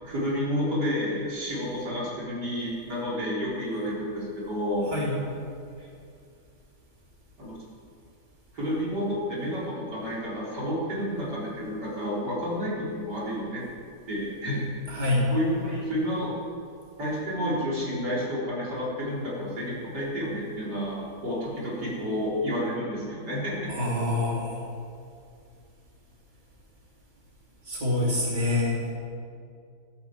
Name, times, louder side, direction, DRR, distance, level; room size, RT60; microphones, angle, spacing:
voice 1, 0.0-4.9 5.8-5.9 7.4-7.6 8.5-13.6 14.1-14.7 15.3-16.3 17.0-23.7, equal, 75° right, -6 dB, 4.8 m, -30 dB
voice 2, 14.9-15.2 23.7-24.6 27.7-28.9, left 2 dB, 25° right, -5 dB, 3.6 m, -26 dB
14.5 x 10.5 x 7.5 m, 2.4 s
omnidirectional pair, 1.8 m